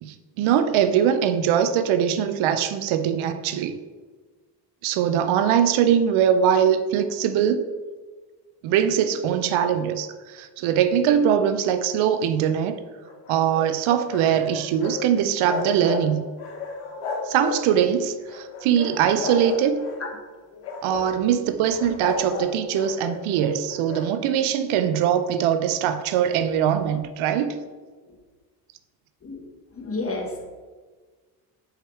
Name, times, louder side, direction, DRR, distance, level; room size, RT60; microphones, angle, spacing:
voice 1, 0.0-3.8 4.8-7.6 8.6-12.8 13.3-16.2 17.3-19.8 20.8-27.6, right 9 dB, 75° right, 10 dB, 0.6 m, -22 dB
sound 1, 13.0-15.0 15.3-16.1 16.4-17.9 18.3-20.0 20.5-21.1 21.7-24.1, left 5 dB, 80° left, 1.1 m, -33 dB
voice 2, 29.7-30.5, left 3 dB, 25° left, 0 dB, 1.5 m, -30 dB
4.8 x 4.7 x 4.6 m, 1.4 s
supercardioid pair, 75°, 49 cm